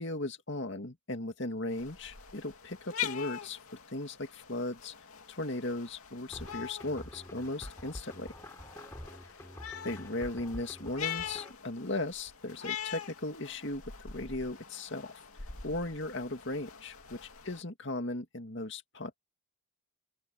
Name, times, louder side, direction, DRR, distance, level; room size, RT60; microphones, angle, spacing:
voice 1, 0.0-3.6 3.9-4.9 5.3-8.3 9.8-15.1 15.6-19.2, left 2 dB, 55° left, 2.5 m, -37 dB
sound 1, 1.7-17.6, left 9 dB, 85° left, 2.6 m, -44 dB
sound 2, 6.3-11.5, equal, 15° left, 3.3 m, -47 dB
open air
head